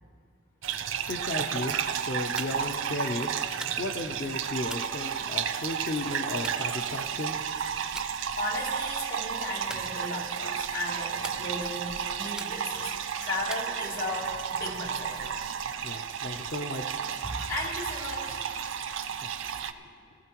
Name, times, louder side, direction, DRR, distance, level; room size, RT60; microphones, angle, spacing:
sound 1, 0.6-19.7, right 8 dB, 70° right, 0.5 m, -32 dB
voice 1, 0.7-7.6 15.8-17.1 19.1-19.9, left 2 dB, 50° left, 3 dB, 0.6 m, -35 dB
sound 2, 2.4-2.8 3.6-4.1 4.7-5.6 6.4-7.3 8.0-8.2 8.6-8.9 9.7-10.5 11.2-11.9 12.4-12.9 13.5-14.3, right 2 dB, 5° right, 0.4 m, -44 dB
voice 2, 8.4-12.9 13.2-15.2 17.2-18.4, left 2 dB, 85° left, -5 dB, 3.2 m, -35 dB
19.5 x 14.0 x 3.0 m, 2.1 s
head